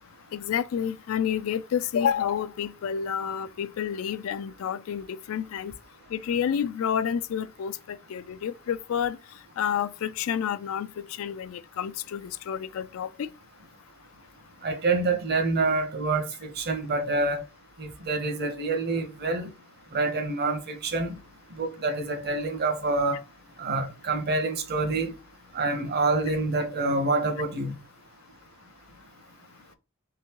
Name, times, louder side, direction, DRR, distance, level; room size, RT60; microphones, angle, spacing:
voice 1, 0.3-5.7 6.1-9.2 9.6-13.3, left 8 dB, 70° left, 0.3 m, -29 dB
voice 2, 14.6-17.4 17.8-19.5 19.9-21.2 21.6-23.2 23.6-25.1 25.5-27.8, right 3 dB, 50° right, 0.8 m, -27 dB
3.8 x 3.6 x 2.9 m
head